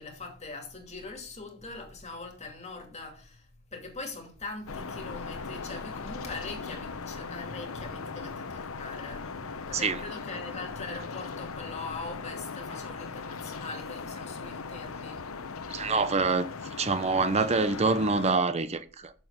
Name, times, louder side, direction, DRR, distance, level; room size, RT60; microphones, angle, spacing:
voice 1, 0.0-3.4 3.7-15.2, left 3 dB, 30° left, 2.5 m, -42 dB
sound 1, 4.7-18.4, left 4 dB, 80° left, 0.8 m, -39 dB
voice 2, 15.7-16.5 16.8-19.1, right 4 dB, 30° right, 0.6 m, -26 dB
6.8 x 6.3 x 7.0 m
head